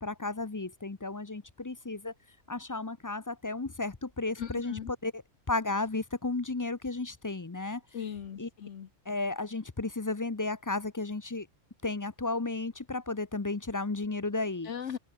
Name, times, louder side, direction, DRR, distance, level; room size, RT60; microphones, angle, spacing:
voice 1, 0.0-2.1 2.5-5.2 5.5-7.8 8.4-8.5 9.1-11.5 11.8-14.7, left 3 dB, 20° left, 0.5 m, -33 dB
voice 2, 4.4-4.9 7.9-8.9 14.6-15.0, left 8 dB, 65° left, 1.3 m, -38 dB
open air
omnidirectional pair, 1.3 m